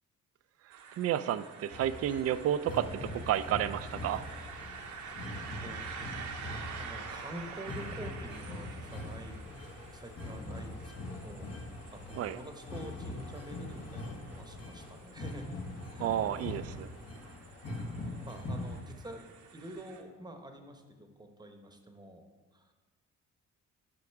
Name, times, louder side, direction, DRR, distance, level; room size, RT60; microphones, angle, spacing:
sound 1, 0.7-20.0, right 6 dB, 75° right, 0.9 m, -48 dB
voice 1, 1.0-4.2 12.2-12.4 16.0-16.9, right 11 dB, 55° right, 14 dB, 0.4 m, -31 dB
sound 2, 1.7-18.8, left 2 dB, 55° left, 1.5 m, -42 dB
voice 2, 6.8-9.6 9.9-15.6 15.9-16.3 18.2-19.3 19.5-22.7, right 1 dB, 15° right, 5 dB, 1.0 m, -47 dB
8.6 x 6.0 x 4.6 m, 1.3 s
cardioid pair, 90°, 30 cm